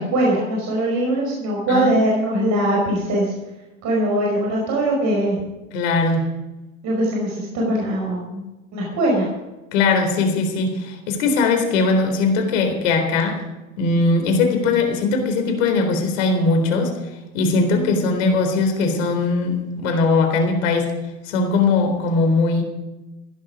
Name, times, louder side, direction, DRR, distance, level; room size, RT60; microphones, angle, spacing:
voice 1, 0.0-3.3 3.8-5.4 6.8-8.4 8.7-9.3 17.7-18.1, right 1 dB, 45° right, -2 dB, 5.5 m, -21 dB
voice 2, 1.7-2.1 2.3-2.6 5.7-6.3 9.7-13.4 13.8-16.9 17.3-20.9 21.2-22.6, left 3 dB, 65° left, 5 dB, 4.0 m, -20 dB
15.5 x 11.5 x 5.1 m, 1.1 s
hypercardioid pair, 90°, 41 cm